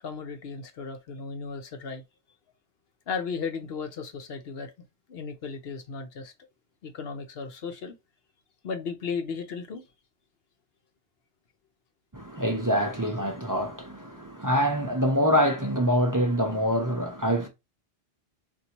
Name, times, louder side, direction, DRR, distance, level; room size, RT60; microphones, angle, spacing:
voice 1, 0.0-2.0 3.1-4.7 5.1-6.3 6.8-8.0 8.6-9.9, left 5 dB, 70° left, 1.0 m, -35 dB
voice 2, 12.1-17.5, equal, 20° right, 0.6 m, -25 dB
4.0 x 2.6 x 4.3 m
omnidirectional pair, 1.0 m